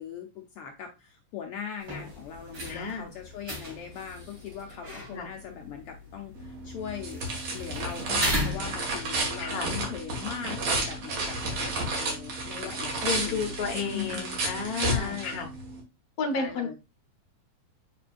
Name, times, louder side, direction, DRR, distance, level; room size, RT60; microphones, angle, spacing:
voice 1, 0.0-7.3 7.5-11.6 11.9-14.3 14.6-15.4 16.3-16.7, left 8 dB, 90° left, 3 dB, 1.2 m, -40 dB
sound 1, 1.8-9.3, left 1 dB, 40° right, 3.3 m, -37 dB
voice 2, 2.7-3.1 5.1-5.3 9.4-9.7 13.0-15.5 16.2-16.7, left 4 dB, 55° left, 3 dB, 1.0 m, -32 dB
sound 2, 6.4-15.8, right 2 dB, 55° right, 3.0 m, -32 dB
7.6 x 5.1 x 2.5 m, 0.26 s
omnidirectional pair, 3.6 m